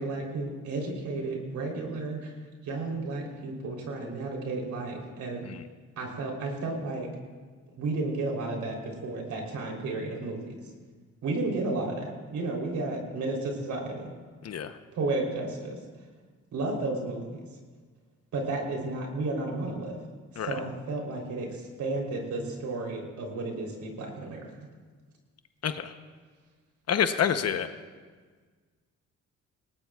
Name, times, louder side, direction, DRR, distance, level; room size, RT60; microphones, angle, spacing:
voice 1, 0.0-2.3 2.6-5.5 6.0-7.1 7.8-10.6 11.2-14.1 14.9-15.8 16.5-17.4 18.3-20.0 20.3-24.5, right 2 dB, 70° right, 0 dB, 3.7 m, -32 dB
voice 2, 26.9-27.7, left 8 dB, 55° left, 9 dB, 0.9 m, -27 dB
19.0 x 18.5 x 2.4 m, 1.5 s
cardioid pair, 90°, 30 cm